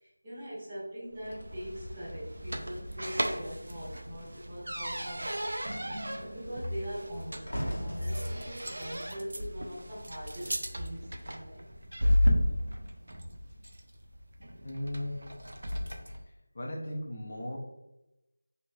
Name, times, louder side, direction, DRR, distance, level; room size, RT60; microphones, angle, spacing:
voice 1, 0.0-5.5 6.2-11.7, equal, 15° right, -11 dB, 1.0 m, -40 dB
sound 1, 1.1-16.2, equal, 65° right, 0.4 m, -34 dB
sound 2, 1.2-4.0 4.3-4.6 4.9-10.3 11.0-11.3, equal, 80° left, 1.0 m, -43 dB
voice 2, 14.6-15.2 16.5-17.6, left 1 dB, 25° left, -2 dB, 0.5 m, -36 dB
3.1 x 2.7 x 2.6 m, 0.97 s
figure-of-eight pair, 175°, 0 cm